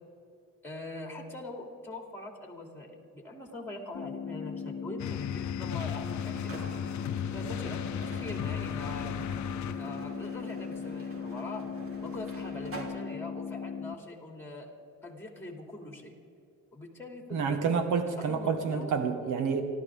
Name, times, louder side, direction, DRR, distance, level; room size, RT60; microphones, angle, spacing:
voice 1, 0.6-6.8 7.3-9.2 9.6-11.7 12.0-14.7 15.0-16.1 16.7-17.8 18.2-18.9, left 2 dB, 5° left, 2 dB, 2.8 m, -43 dB
sound 1, 3.9-14.0, left 6 dB, 50° left, 1.0 m, -38 dB
sound 2, 5.0-10.1, left 10 dB, 70° left, 0.6 m, -36 dB
sound 3, 5.8-12.8, right 2 dB, 45° right, 3.0 m, -46 dB
voice 2, 17.3-19.6, right 5 dB, 85° right, 7 dB, 1.7 m, -28 dB
29.5 x 12.5 x 3.7 m, 2.6 s
cardioid pair, 90°, 30 cm